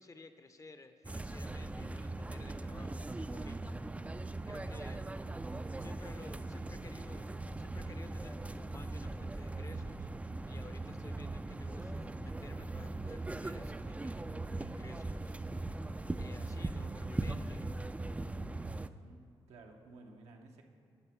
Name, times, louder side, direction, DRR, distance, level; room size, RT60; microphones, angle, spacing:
voice 1, 0.0-3.8 4.5-5.1 5.8-10.1 10.5-15.4 16.2-17.7, left 3 dB, 30° left, 9 dB, 0.6 m, -54 dB
sound 1, 1.0-18.9, right 2 dB, 15° right, 0.3 m, -40 dB
voice 2, 18.8-20.6, right 3 dB, 75° right, 2 dB, 0.8 m, -56 dB
10.5 x 4.0 x 5.7 m, 2.3 s
hypercardioid pair, 40°, 11 cm